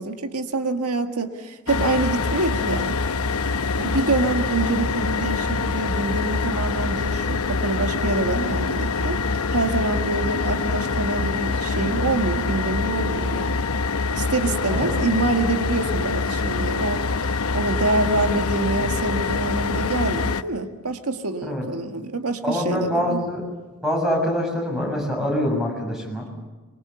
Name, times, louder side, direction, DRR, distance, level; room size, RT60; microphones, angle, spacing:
voice 1, 0.0-3.1 3.8-9.2 9.5-13.6 14.1-17.0 17.5-23.2, right 3 dB, 85° right, 6 dB, 1.7 m, -26 dB
sound 1, 1.7-20.4, left 4 dB, 75° left, 0.9 m, -25 dB
voice 2, 22.4-23.4 23.8-26.3, left 1 dB, ahead, 0 dB, 6.8 m, -24 dB
25.0 x 23.5 x 7.0 m, 1.3 s
head